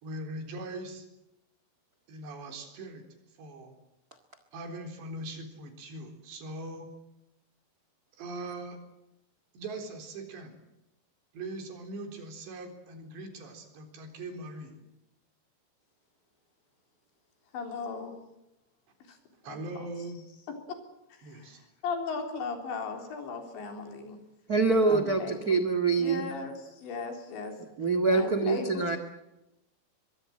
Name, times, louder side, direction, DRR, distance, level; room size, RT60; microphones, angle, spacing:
voice 1, 0.0-1.1 2.1-3.0 3.4-3.8 4.5-6.9 8.2-8.8 9.5-10.6 11.3-14.8 19.4-20.3 21.2-21.6 24.9-25.2, right 2 dB, 75° right, 5 dB, 6.1 m, -41 dB
voice 2, 17.5-18.1 19.5-19.6 21.8-24.2 24.9-25.6 26.0-27.5 28.1-28.7, left 4 dB, 85° left, 5 dB, 6.0 m, -36 dB
voice 3, 24.5-26.3 27.8-29.0, right 4 dB, 60° right, 9 dB, 0.9 m, -25 dB
23.5 x 22.5 x 7.7 m, 0.91 s
omnidirectional pair, 5.0 m